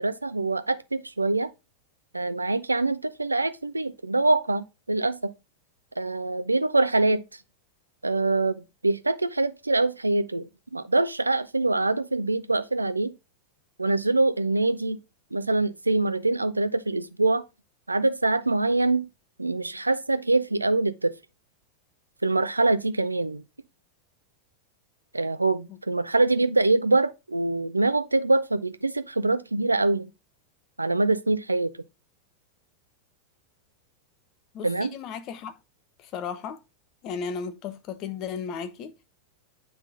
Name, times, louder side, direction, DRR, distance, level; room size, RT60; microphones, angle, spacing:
voice 1, 0.0-1.5 2.1-5.3 6.0-7.2 8.0-13.1 13.8-15.0 15.3-17.4 17.9-19.1 19.4-21.1 22.2-23.4 25.1-30.1 30.8-31.7 34.6-34.9, right 2 dB, 80° right, 0.5 m, -24 dB
voice 2, 34.5-35.5 36.0-36.6 37.0-38.9, left 6 dB, 35° left, 0.9 m, -35 dB
9.3 x 3.6 x 3.8 m
figure-of-eight pair, 90°, 0 cm